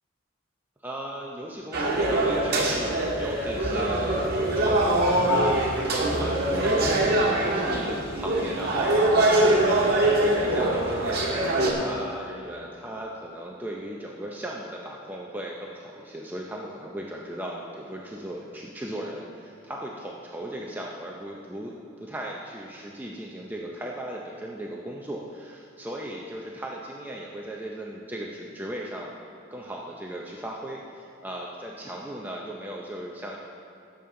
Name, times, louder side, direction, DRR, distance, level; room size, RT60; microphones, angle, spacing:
voice 1, 0.8-4.3 4.5-9.1 9.6-21.7 22.0-29.2 29.5-33.4, right 1 dB, 10° right, -2 dB, 0.6 m, -37 dB
sound 1, 1.7-11.7, right 1 dB, 50° right, 1.6 m, -23 dB
16.0 x 7.0 x 3.8 m, 2.7 s
head